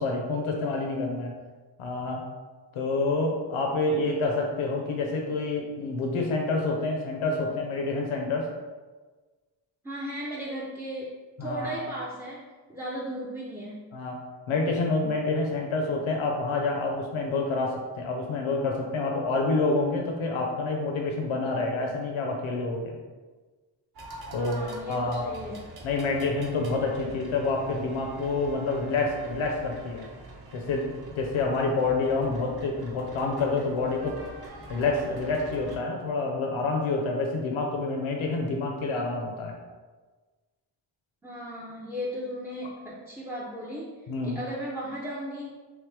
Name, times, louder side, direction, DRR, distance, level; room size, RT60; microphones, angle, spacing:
voice 1, 0.0-1.3 1.8-2.2 2.7-8.5 11.4-11.8 13.9-14.2 14.5-23.0 24.3-25.3 25.8-30.0 30.5-30.8 31.1-34.2 34.7-39.6 44.1-44.4, left 3 dB, 85° left, 1 dB, 0.7 m, -28 dB
voice 2, 9.8-11.1 11.4-13.8 24.4-25.6 41.2-43.9 44.2-45.5, equal, 5° right, -5 dB, 0.3 m, -36 dB
sound 1, 23.9-35.8, right 2 dB, 50° right, 0.7 m, -45 dB
3.7 x 3.2 x 3.2 m, 1.3 s
wide cardioid pair, 145°, 47 cm